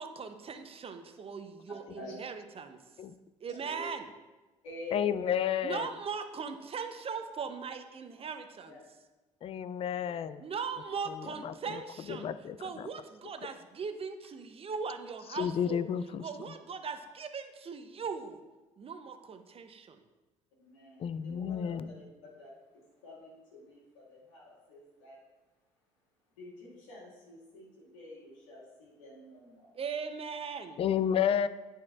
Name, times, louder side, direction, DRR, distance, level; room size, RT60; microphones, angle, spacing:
voice 1, 0.0-2.8 3.4-4.1 5.6-8.8 10.4-12.3 12.6-15.8 16.2-18.4 18.8-20.0 29.7-30.8, right 5 dB, 35° right, 8 dB, 0.7 m, -39 dB
voice 2, 3.5-3.9 4.6-5.3 8.7-8.8 9.7-10.2 20.6-25.2 26.4-29.7, left 1 dB, 85° left, -5 dB, 2.0 m, -49 dB
voice 3, 4.9-5.9 9.4-10.4 11.1-12.9 15.3-16.5 21.0-21.9 30.8-31.5, left 9 dB, 35° left, 14 dB, 0.3 m, -32 dB
10.5 x 4.5 x 2.5 m, 1.1 s
hypercardioid pair, 60°, 16 cm